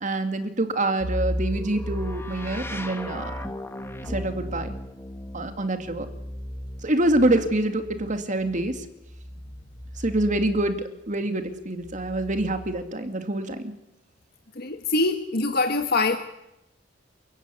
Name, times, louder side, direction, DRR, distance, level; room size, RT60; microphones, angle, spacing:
voice 1, 0.0-3.3 4.1-4.8 5.3-6.1 6.8-8.8 10.0-13.7, right 1 dB, 40° right, 7 dB, 2.4 m, -26 dB
sound 1, 1.0-10.8 11.8-12.9, equal, 15° left, 2.0 m, -35 dB
voice 2, 14.5-16.2, left 3 dB, 55° left, 6 dB, 1.4 m, -24 dB
29.0 x 15.5 x 9.8 m, 0.92 s
head